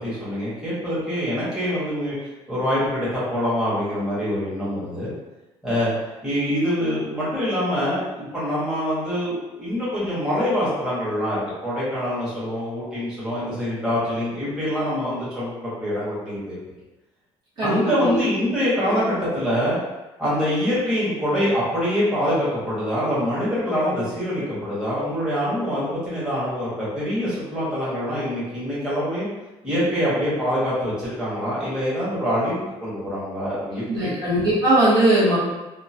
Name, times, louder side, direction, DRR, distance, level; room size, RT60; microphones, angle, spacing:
voice 1, 0.0-2.1 2.5-5.1 5.6-5.9 6.2-16.5 17.6-19.8 20.2-29.3 29.6-34.1, equal, 5° right, -11 dB, 1.4 m, -25 dB
voice 2, 17.6-18.2 33.9-35.4, right 1 dB, 40° right, -10 dB, 1.3 m, -19 dB
2.9 x 2.4 x 2.8 m, 1.1 s
cardioid pair, 125°, 11 cm